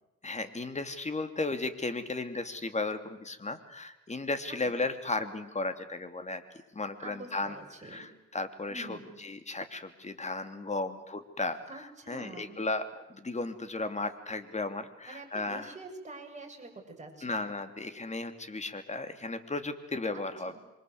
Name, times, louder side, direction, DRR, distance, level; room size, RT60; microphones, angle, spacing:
voice 1, 0.2-6.4 6.7-7.6 7.8-15.7 17.2-20.6, left 3 dB, 25° left, 9 dB, 2.9 m, -35 dB
voice 2, 7.0-8.1 8.7-9.2 11.7-12.6 15.1-17.5 20.1-20.6, right 2 dB, 25° right, 1 dB, 7.4 m, -47 dB
27.0 x 24.0 x 8.0 m, 0.98 s
cardioid pair, 90°, 30 cm